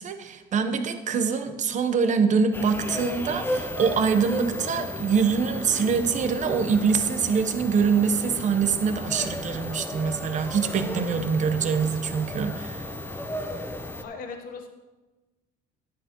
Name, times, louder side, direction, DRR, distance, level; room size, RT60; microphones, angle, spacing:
voice 1, 0.0-12.9, right 6 dB, 45° right, 8 dB, 0.9 m, -24 dB
sound 1, 2.5-14.0, left 1 dB, 15° left, 0.7 m, -34 dB
voice 2, 14.0-14.7, left 4 dB, 55° left, 4 dB, 0.9 m, -38 dB
11.0 x 9.8 x 3.0 m, 1.2 s
cardioid pair, 110°, 17 cm